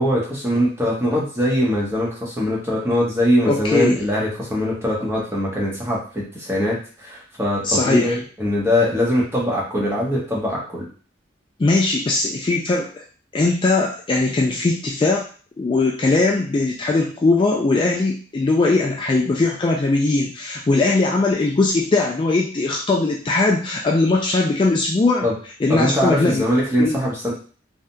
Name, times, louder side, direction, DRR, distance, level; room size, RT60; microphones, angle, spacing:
voice 1, 0.0-10.9 25.2-25.3 25.7-27.3, equal, 15° right, -5 dB, 1.0 m, -22 dB
voice 2, 3.4-4.0 7.6-8.2 11.6-13.0 13.3-15.3 15.6-25.3 25.6-26.4 26.8-27.0, left 3 dB, 25° left, -1 dB, 0.3 m, -20 dB
3.5 x 2.6 x 2.2 m, 0.40 s
head